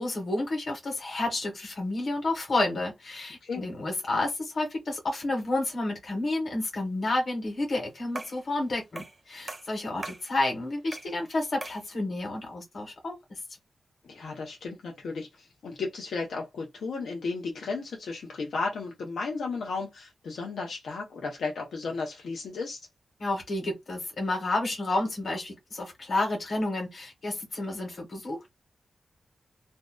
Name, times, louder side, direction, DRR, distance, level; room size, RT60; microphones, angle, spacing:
voice 1, 0.0-13.4 23.2-28.5, left 2 dB, 50° left, 1.2 m, -30 dB
sound 1, 8.1-8.5 9.0-9.2 9.5-10.3 10.9-11.2 11.6-11.9, right 2 dB, 25° right, 0.6 m, -40 dB
voice 2, 14.0-22.8, left 4 dB, 90° left, 0.7 m, -34 dB
2.6 x 2.2 x 2.2 m
wide cardioid pair, 150°, 0 cm